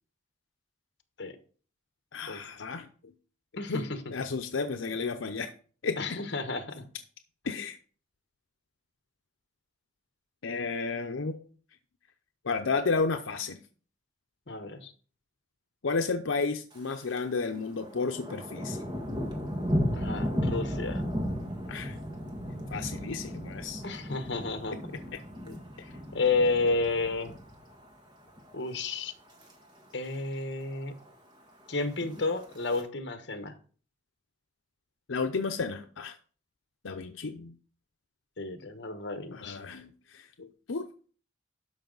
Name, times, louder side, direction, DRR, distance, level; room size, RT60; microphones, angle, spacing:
voice 1, 2.1-2.9 3.7-3.8 4.1-5.5 5.8-6.2 7.5-7.8 10.4-11.4 12.4-13.6 15.8-18.8 21.7-22.0 22.7-23.8 24.7-24.8 25.4-25.9 35.1-36.1 36.8-37.5 39.3-40.8, left 4 dB, 85° left, 0.7 m, -32 dB
voice 2, 3.6-4.0 6.0-6.9 14.5-14.9 19.9-21.0 23.8-25.0 26.1-27.4 28.5-29.1 29.9-31.0 31.7-33.5 38.4-39.6, left 3 dB, 60° left, 1.1 m, -31 dB
Thunder, 16.7-17.2 17.5-27.9 28.3-28.6 29.1-29.5 29.8-29.9 30.0-30.1 30.5-31.1 31.9-32.8, equal, 20° right, 1.6 m, -35 dB
12.5 x 5.5 x 3.9 m
head